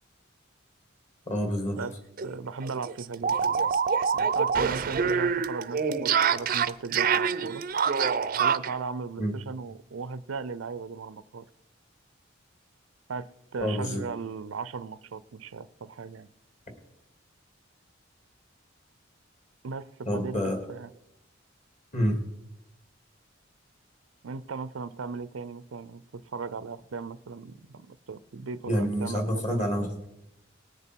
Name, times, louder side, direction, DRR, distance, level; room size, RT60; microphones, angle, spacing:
voice 1, 1.3-1.8 9.2-9.3 13.6-14.0 20.1-20.6 21.9-22.2 28.7-30.1, equal, 35° left, 3 dB, 2.5 m, -28 dB
sound 1, 1.8-1.9 2.2-2.3 2.6-8.8, right 6 dB, 45° right, 0.5 m, -26 dB
voice 2, 2.2-3.7 4.1-7.6 8.4-11.4 13.1-16.3 19.6-19.9 20.1-20.9 24.2-29.7, right 4 dB, 90° right, 17 dB, 0.5 m, -37 dB
19.5 x 6.8 x 4.5 m, 0.83 s
head